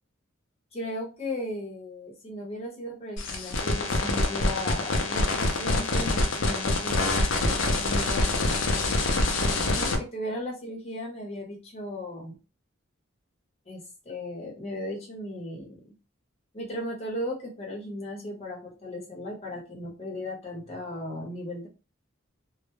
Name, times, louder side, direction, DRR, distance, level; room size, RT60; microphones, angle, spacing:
voice 1, 0.7-8.9 9.6-12.3 13.7-15.8 16.5-21.7, left 1 dB, 30° left, -2 dB, 0.8 m, -36 dB
sound 1, 3.2-10.0, left 2 dB, 65° left, 0.5 m, -25 dB
2.1 x 2.0 x 3.0 m, 0.31 s
head